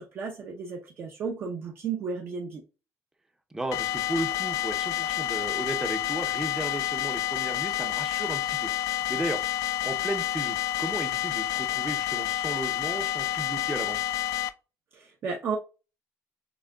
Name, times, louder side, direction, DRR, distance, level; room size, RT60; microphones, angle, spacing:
voice 1, 0.0-2.6 14.9-15.6, right 5 dB, 45° right, 0.7 m, -33 dB
voice 2, 3.5-8.7 9.1-9.4 9.8-14.1, right 1 dB, 10° right, 0.6 m, -34 dB
sound 1, 3.7-14.5, left 12 dB, 85° left, 0.4 m, -29 dB
6.1 x 3.6 x 2.2 m
cardioid pair, 145°, 5 cm